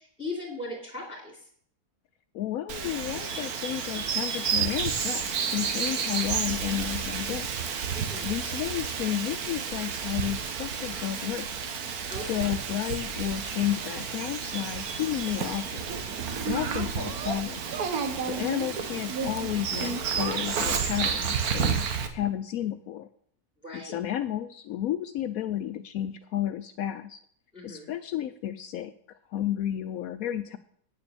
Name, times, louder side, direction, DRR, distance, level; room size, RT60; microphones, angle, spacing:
voice 1, 0.0-1.4 7.9-8.3 12.1-12.5 18.4-18.5 23.6-24.0 27.5-27.9, left 2 dB, 5° left, -4 dB, 2.8 m, -38 dB
voice 2, 2.3-7.5 8.2-11.5 12.2-16.0 16.4-17.6 18.2-21.9 22.1-23.1 23.7-27.2 27.6-30.6, left 11 dB, 70° left, 10 dB, 1.0 m, -32 dB
Bird vocalization bird call bird song, 2.7-22.1, right 6 dB, 70° right, 1.5 m, -31 dB
9.0 x 6.9 x 6.9 m, 0.63 s
omnidirectional pair, 1.6 m